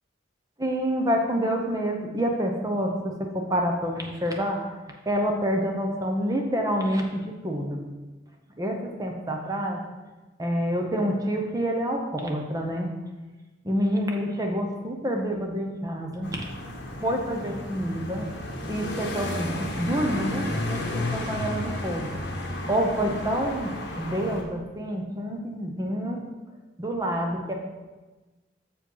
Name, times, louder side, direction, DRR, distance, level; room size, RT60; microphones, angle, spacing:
voice 1, 0.6-4.6 5.1-7.8 8.6-9.8 10.4-12.9 13.6-16.4 17.0-18.3 18.7-22.2 22.7-26.2 26.8-27.5, equal, 20° right, 1 dB, 0.8 m, -27 dB
sound 1, 16.2-24.4, left 1 dB, 60° left, 1.2 m, -32 dB
7.0 x 5.0 x 5.6 m, 1.2 s
head